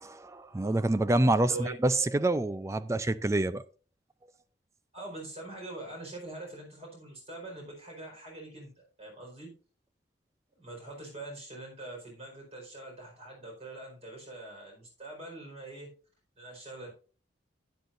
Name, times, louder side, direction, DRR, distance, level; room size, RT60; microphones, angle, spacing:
voice 1, 0.0-3.6, right 2 dB, 15° right, 0.3 m, -27 dB
voice 2, 4.9-9.5 10.6-15.9 16.4-16.9, right 2 dB, 35° right, 4.5 m, -43 dB
12.0 x 9.4 x 2.6 m
head